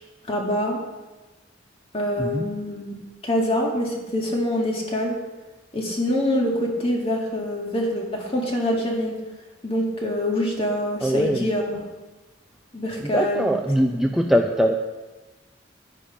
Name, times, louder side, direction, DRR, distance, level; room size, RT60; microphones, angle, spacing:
voice 1, 0.3-0.8 1.9-2.8 3.2-5.1 5.7-9.1 9.6-11.8 12.7-13.5 13.9-14.2, left 1 dB, 30° left, 0 dB, 2.0 m, -25 dB
voice 2, 11.0-11.5 13.0-14.7, equal, ahead, 2 dB, 0.5 m, -22 dB
10.5 x 9.8 x 5.1 m, 1.2 s
head